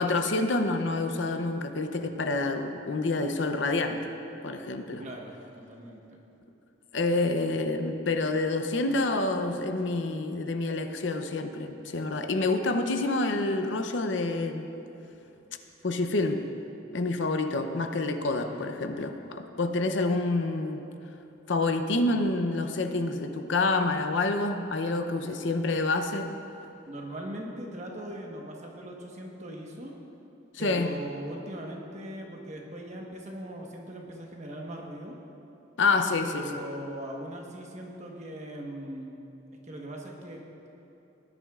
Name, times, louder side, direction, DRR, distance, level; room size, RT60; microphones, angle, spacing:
voice 1, 0.0-4.1 4.4-5.0 6.9-14.7 15.8-16.4 16.9-20.8 21.5-26.3 30.5-30.9 35.8-36.5, left 2 dB, 70° left, 7 dB, 0.7 m, -28 dB
voice 2, 5.0-6.2 18.3-18.7 26.9-30.0 30.6-35.2 36.3-39.1 39.6-40.4, right 1 dB, 35° right, 0 dB, 1.2 m, -40 dB
18.5 x 10.5 x 2.4 m, 2.9 s
head